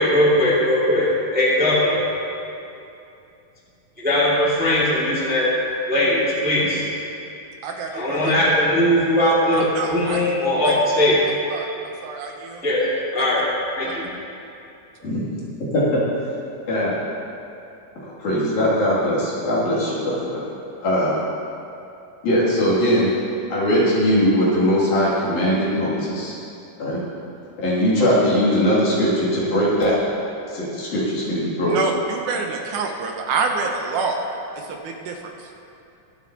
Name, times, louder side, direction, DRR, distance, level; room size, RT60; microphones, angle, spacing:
voice 1, 0.0-2.0 4.0-5.5 5.9-6.9 7.9-11.2 12.6-12.9 13.1-13.4 13.7-14.1, left 1 dB, 5° right, -7 dB, 1.4 m, -19 dB
voice 2, 7.6-8.3 9.2-9.3 9.8-10.3 10.7-10.8 11.5-12.6 15.0-15.1 31.7-34.2 34.5-35.5, right 4 dB, 75° right, 2 dB, 2.2 m, -27 dB
voice 3, 18.2-20.4 20.8-21.1 22.2-23.1 23.5-26.3 26.8-27.0 27.6-29.9 30.5-31.7, equal, 65° left, -9 dB, 4.1 m, -20 dB
23.5 x 7.8 x 2.9 m, 2.7 s
omnidirectional pair, 3.8 m